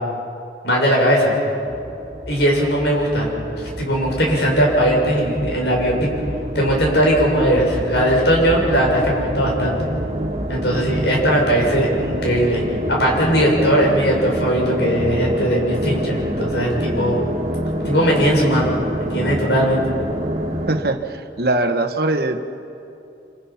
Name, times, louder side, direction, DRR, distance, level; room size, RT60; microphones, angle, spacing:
voice 1, 0.6-1.3 2.3-3.3 3.8-6.1 6.5-9.8 10.5-12.6 12.9-17.2 17.8-18.7 19.0-19.8, equal, 80° left, -1 dB, 6.6 m, -18 dB
sound 1, 1.6-20.8, equal, 40° right, 2.2 m, -27 dB
voice 2, 20.7-22.5, right 2 dB, 60° right, 7 dB, 1.3 m, -21 dB
27.0 x 25.5 x 5.8 m, 2.7 s
head